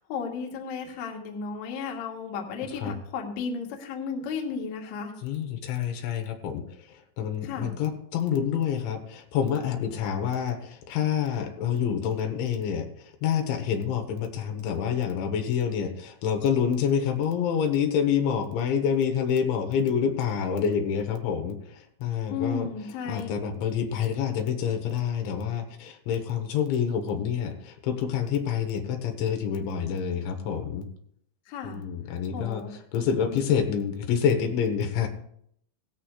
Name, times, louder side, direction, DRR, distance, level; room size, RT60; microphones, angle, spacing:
voice 1, 0.0-5.1 7.4-7.7 22.3-23.3 23.7-23.8 31.5-31.8 32.3-32.7 33.3-33.4, left 5 dB, 60° left, 1 dB, 2.1 m, -34 dB
voice 2, 5.2-22.7 23.1-30.9 31.7-35.1, left 8 dB, 85° left, 5 dB, 3.6 m, -27 dB
17.5 x 13.5 x 2.4 m, 0.70 s
omnidirectional pair, 5.2 m